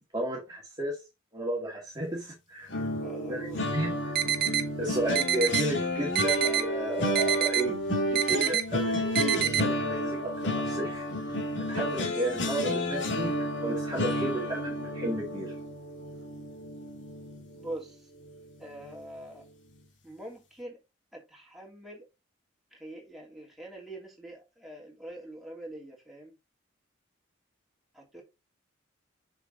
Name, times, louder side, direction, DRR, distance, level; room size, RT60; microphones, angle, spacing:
voice 1, 0.1-1.0 1.3-2.7 3.3-4.2 4.8-7.8 8.1-11.0 11.7-15.5, right 1 dB, 20° right, 2.1 m, -33 dB
sound 1, 2.7-17.8 18.2-18.5 18.8-19.0, left 1 dB, 60° left, 2.4 m, -31 dB
voice 2, 3.0-3.8 14.2-14.5 17.5-18.1 18.6-19.5 20.0-20.8 21.1-22.1 22.7-26.4 27.9-28.2, right 1 dB, ahead, 3.0 m, -44 dB
sound 2, 4.1-4.6 5.1-5.6 6.1-6.6 7.1-7.6 8.1-8.6 9.1-9.6, right 10 dB, 45° right, 1.0 m, -26 dB
6.9 x 6.1 x 3.8 m
head